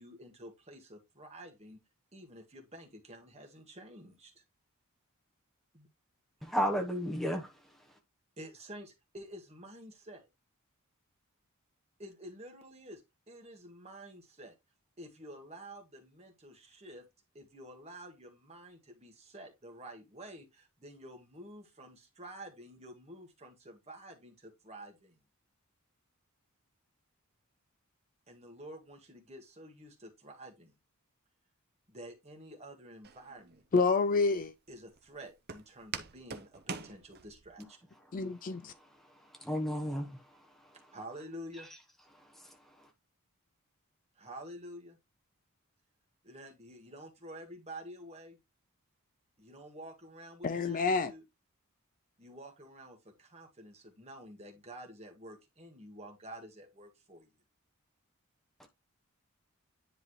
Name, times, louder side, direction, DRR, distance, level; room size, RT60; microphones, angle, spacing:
voice 1, 0.0-1.8 2.1-4.4 5.7-5.9 8.4-10.3 12.0-14.6 15.0-17.0 17.3-25.2 28.3-30.7 31.9-33.6 34.7-37.9 40.9-41.7 44.2-45.0 46.2-48.4 49.4-51.2 52.2-57.3, right 1 dB, 30° right, 1.8 m, -49 dB
voice 2, 6.4-7.5 39.4-40.2 58.6-58.7, equal, ahead, 1.0 m, -32 dB
Walk footsteps, 33.0-37.6, right 5 dB, 45° right, 0.7 m, -45 dB
voice 3, 33.7-34.5 38.1-38.7 50.4-51.1, left 4 dB, 40° left, 0.4 m, -28 dB
10.0 x 3.9 x 3.2 m
head